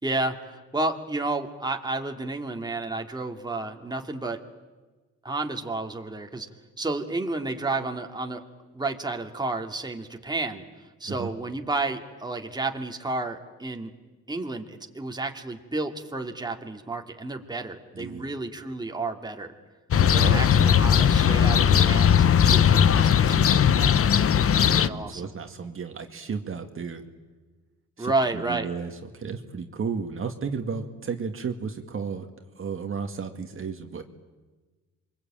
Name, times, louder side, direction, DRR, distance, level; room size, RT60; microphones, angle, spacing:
voice 1, 0.0-4.4 5.2-6.5 6.8-8.4 8.7-10.6 11.0-13.9 14.3-19.5 20.1-24.0 24.7-25.3 28.0-28.7, right 2 dB, 15° right, 3 dB, 2.6 m, -31 dB
voice 2, 18.0-18.3 20.0-20.5 24.6-27.0 28.0-32.3 32.6-34.0, right 5 dB, 45° right, 4 dB, 2.2 m, -33 dB
sound 1, 19.9-24.9, left 8 dB, 50° left, 0.9 m, -19 dB
28.0 x 23.5 x 9.0 m, 1.2 s
cardioid pair, 90°, 30 cm